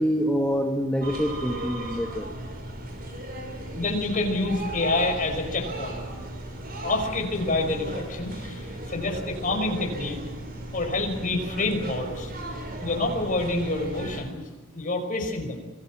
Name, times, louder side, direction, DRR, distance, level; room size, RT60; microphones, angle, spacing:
voice 1, 0.0-2.3 12.7-12.8, equal, 5° left, 3 dB, 1.8 m, -26 dB
sound 1, 1.0-14.2, right 1 dB, 45° right, 5.9 m, -36 dB
voice 2, 3.8-6.0 6.8-8.6 8.9-10.2 10.7-12.3 12.8-14.5 14.7-15.6, left 2 dB, 40° left, 3 dB, 5.7 m, -27 dB
28.5 x 22.5 x 6.2 m, 1.3 s
head